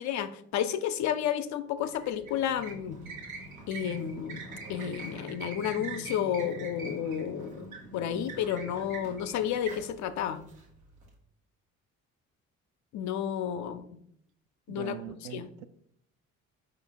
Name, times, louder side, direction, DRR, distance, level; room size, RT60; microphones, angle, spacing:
voice 1, 0.0-3.0 3.7-4.4 4.7-10.4 12.9-13.9 14.7-15.5, left 9 dB, 45° left, 0.5 m, -32 dB
sound 1, 1.8-11.1, right 3 dB, 90° right, 0.8 m, -43 dB
voice 2, 14.7-15.6, right 11 dB, 50° right, 0.4 m, -42 dB
4.8 x 2.4 x 4.5 m
figure-of-eight pair, 50°, 41 cm